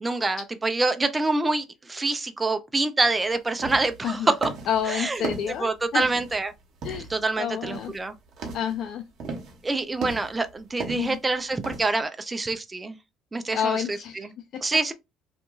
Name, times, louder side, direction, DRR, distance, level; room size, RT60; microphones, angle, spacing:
voice 1, 0.0-4.5 4.9-5.2 5.6-6.5 7.1-8.1 9.6-13.0 13.3-13.8 14.2-14.3 14.6-14.9, right 3 dB, 15° right, 0.3 m, -26 dB
sound 1, 3.0-3.2 3.4-4.0 4.4-4.8 5.2-6.4 6.8-7.2 7.6-8.0 8.3-8.7 9.2-9.6 10.0-10.5 10.8-11.2 11.6-11.8, right 4 dB, 55° right, 0.9 m, -35 dB
voice 2, 4.0-4.3 4.7-6.1 6.8-7.1 7.4-7.9 8.5-9.0 10.9-11.2 13.5-14.6, left 8 dB, 55° left, 0.3 m, -29 dB
2.8 x 2.5 x 2.3 m
cardioid pair, 120°, 0 cm